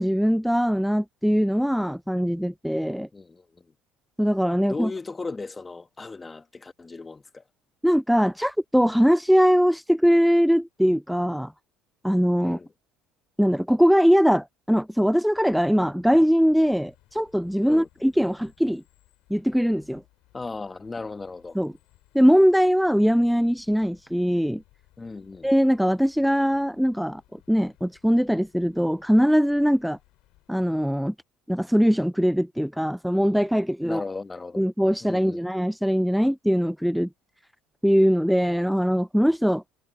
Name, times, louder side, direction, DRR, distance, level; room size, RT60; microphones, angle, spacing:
voice 1, 0.0-3.1 4.2-4.9 7.8-11.5 12.0-12.6 13.4-18.8 19.3-20.0 21.6-21.7 22.1-24.6 25.4-27.2 27.5-30.0 30.5-31.1 31.5-34.0 34.6-37.1 37.8-39.6, equal, ahead, 0.3 m, -21 dB
voice 2, 3.1-3.7 4.7-7.4 12.4-12.7 17.7-17.9 20.3-21.6 25.0-25.5 33.8-34.7 35.0-35.5, left 3 dB, 20° left, 1.5 m, -36 dB
sound 1, 16.4-31.1, left 19 dB, 70° left, 5.0 m, -61 dB
hypercardioid pair, 75°, 0 cm